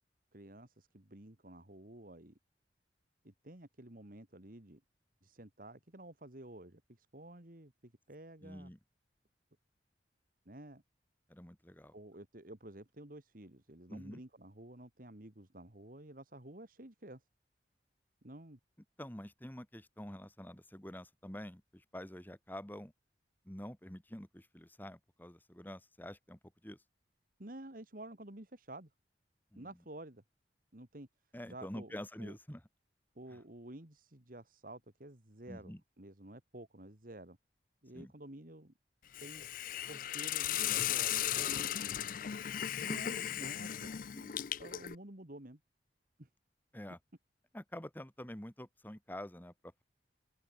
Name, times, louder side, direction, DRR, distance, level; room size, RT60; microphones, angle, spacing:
voice 1, 0.3-2.4 3.2-4.8 5.2-8.7 10.5-10.8 11.9-17.2 18.2-18.6 27.4-28.9 29.6-30.2 30.7-31.1 31.5-31.9 32.2-32.3 33.2-37.4 37.8-38.7 39.2-39.4 39.9-41.6 42.8-44.3 44.6-45.6 46.2-46.3, right 1 dB, 50° right, 2.4 m, -51 dB
voice 2, 8.4-8.8 11.3-12.0 13.9-14.2 19.0-22.9 23.5-26.8 29.5-29.7 31.3-32.6 33.3-33.4 35.5-35.8 37.9-38.1 46.7-47.0 47.5-49.5, equal, 10° left, 2.0 m, -47 dB
Hiss, 39.1-45.0, left 11 dB, 50° left, 0.4 m, -36 dB
head